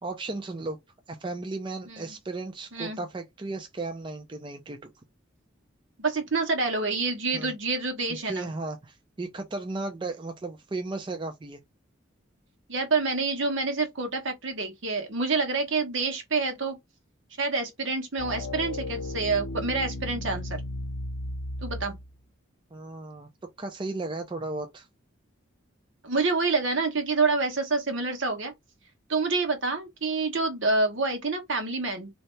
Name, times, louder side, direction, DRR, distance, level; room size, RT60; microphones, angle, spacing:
voice 1, 0.0-0.8 1.1-4.9 7.3-7.5 8.2-11.6 22.7-23.3 23.6-24.9, right 2 dB, 25° right, 0.4 m, -35 dB
voice 2, 6.0-8.5 12.7-16.8 17.4-20.6 21.6-22.0 26.0-28.5 29.1-32.1, right 3 dB, 70° right, 1.2 m, -27 dB
sound 1, 18.2-22.1, left 1 dB, 80° left, 0.6 m, -34 dB
3.2 x 2.8 x 3.2 m
head